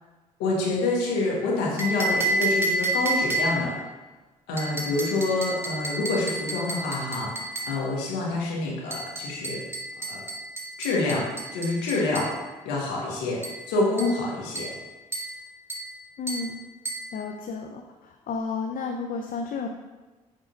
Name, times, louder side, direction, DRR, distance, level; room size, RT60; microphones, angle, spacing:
voice 1, 0.4-3.8 4.5-9.6 10.1-10.2 10.8-11.3 11.5-12.3 12.6-13.4 13.7-14.7, left 2 dB, 80° left, -4 dB, 1.8 m, -27 dB
sound 1, 1.8-3.7 4.6-7.8 8.9-12.4 13.4-13.6 14.0-14.2 14.5-14.8 15.1-15.4 15.7-15.9 16.3-16.5 16.8-17.1, right 1 dB, 15° right, 2.3 m, -30 dB
voice 2, 16.2-16.6 17.1-19.7, left 4 dB, 55° left, 2 dB, 0.8 m, -32 dB
8.1 x 3.7 x 5.2 m, 1.2 s
hypercardioid pair, 50°, 17 cm